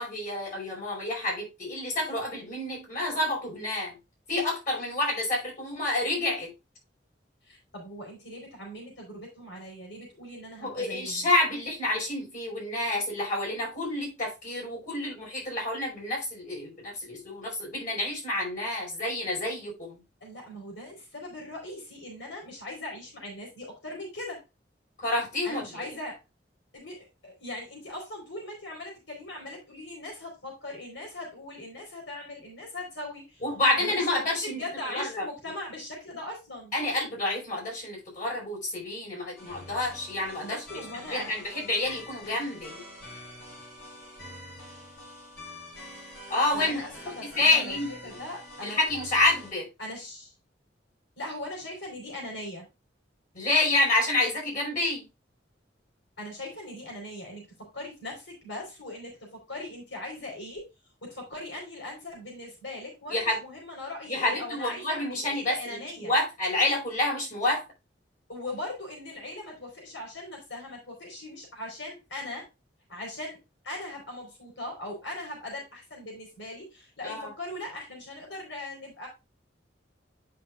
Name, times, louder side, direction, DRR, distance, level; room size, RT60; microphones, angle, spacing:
voice 1, 0.0-4.0 4.3-6.5 10.6-20.0 25.0-25.9 33.4-35.3 36.7-40.6 40.9-42.8 46.3-46.8 47.2-48.2 48.6-49.7 53.3-55.0 63.1-63.4 64.1-67.6 77.0-77.3, left 2 dB, 50° left, 5.3 m, -28 dB
voice 2, 7.4-11.3 20.2-24.4 25.4-26.2 26.7-33.4 33.8-36.7 40.4-41.3 46.5-48.8 49.8-50.3 51.2-52.7 56.2-60.7 61.0-66.1 68.3-72.5 72.9-73.4 73.6-79.1, left 1 dB, 90° left, 4.4 m, -40 dB
sound 1, 39.4-49.5, left 1 dB, 65° left, 4.4 m, -46 dB
11.5 x 5.6 x 2.4 m
head